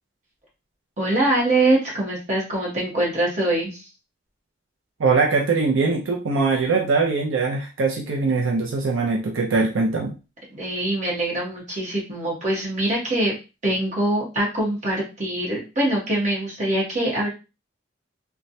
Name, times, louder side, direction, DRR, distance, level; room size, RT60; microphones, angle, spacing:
voice 1, 1.0-3.8 10.5-13.4 13.6-17.3, right 1 dB, 35° right, -4 dB, 1.2 m, -23 dB
voice 2, 5.0-10.1, right 4 dB, 80° right, 0 dB, 0.5 m, -22 dB
3.1 x 2.2 x 2.6 m, 0.30 s
head